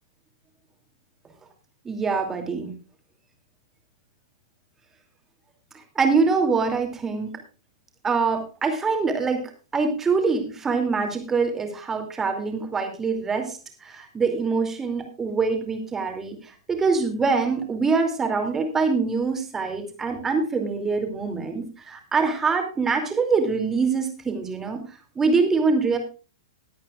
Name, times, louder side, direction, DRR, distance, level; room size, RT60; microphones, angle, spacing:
voice 1, 1.8-2.7 5.9-7.3 8.0-9.4 9.7-24.8 25.2-26.0, right 4 dB, 15° right, 4 dB, 2.6 m, -24 dB
20.5 x 8.7 x 2.4 m, 0.35 s
figure-of-eight pair, 105°, 3 cm